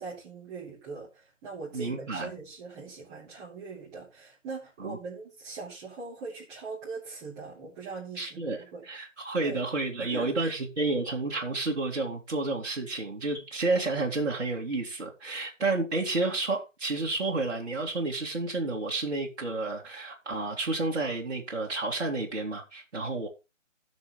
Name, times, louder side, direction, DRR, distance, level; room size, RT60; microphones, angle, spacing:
voice 1, 0.0-8.9 9.4-9.6 10.0-10.5, right 4 dB, 15° right, 3.6 m, -41 dB
voice 2, 1.7-2.3 4.8-5.0 8.2-23.3, right 3 dB, 60° right, 2.6 m, -30 dB
16.5 x 6.4 x 3.3 m
figure-of-eight pair, 150°, 38 cm